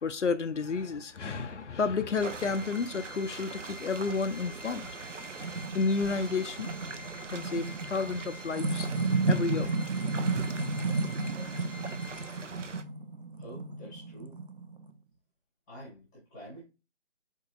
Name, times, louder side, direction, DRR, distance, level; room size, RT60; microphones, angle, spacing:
voice 1, 0.0-4.9 5.7-6.7 7.3-8.9 9.3-9.7, left 4 dB, 80° left, 0.5 m, -31 dB
Organ, 2.1-12.7, left 3 dB, 40° left, 0.6 m, -49 dB
sound 1, 2.2-12.8, right 4 dB, 85° right, 0.6 m, -43 dB
sound 2, 4.8-14.9, right 3 dB, 45° right, 0.5 m, -33 dB
voice 2, 13.4-14.4 15.7-16.6, equal, 5° left, 0.8 m, -47 dB
4.5 x 2.9 x 2.4 m
figure-of-eight pair, 150°, 36 cm